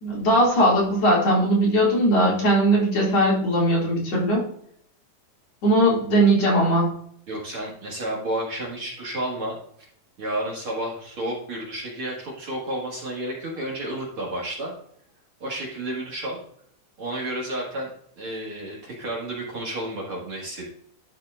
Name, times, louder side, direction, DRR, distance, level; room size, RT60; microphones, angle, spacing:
voice 1, 0.0-4.4 5.6-6.9, right 1 dB, 50° left, -5 dB, 3.3 m, -19 dB
voice 2, 7.3-9.6 10.2-14.7 15.4-16.4 17.0-17.9 18.2-20.7, right 1 dB, 50° right, -4 dB, 2.2 m, -31 dB
12.0 x 5.6 x 2.4 m, 0.68 s
omnidirectional pair, 3.7 m